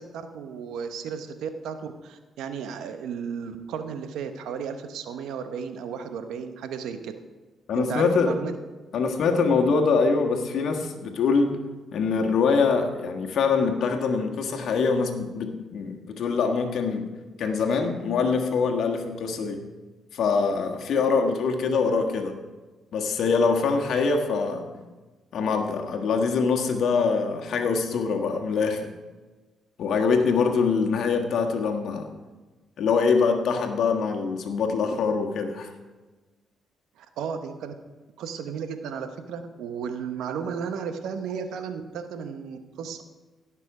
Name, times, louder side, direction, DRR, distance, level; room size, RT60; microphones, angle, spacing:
voice 1, 0.0-7.1 7.7-8.6 37.0-37.7 38.2-43.0, right 6 dB, 75° right, 8 dB, 0.9 m, -34 dB
voice 2, 7.7-8.3 8.9-11.6 11.9-17.0 17.4-19.6 20.1-22.3 22.9-24.7 25.3-28.9 29.8-32.1 32.8-35.7, left 5 dB, 70° left, 3 dB, 1.5 m, -24 dB
17.0 x 6.1 x 4.9 m, 1.3 s
supercardioid pair, 50°, 0 cm